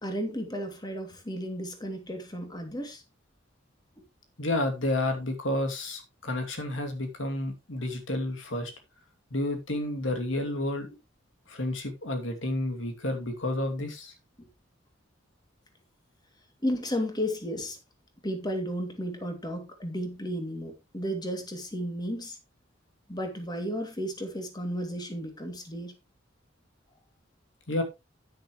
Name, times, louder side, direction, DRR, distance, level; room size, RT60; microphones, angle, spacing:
voice 1, 0.0-3.0 14.4-14.5 16.6-17.8 18.2-22.4 23.1-25.9, equal, 20° left, 2.7 m, -33 dB
voice 2, 4.4-8.7 9.3-10.9 11.5-14.1 27.7-27.8, left 1 dB, 90° left, 2.7 m, -30 dB
10.0 x 10.0 x 3.2 m
head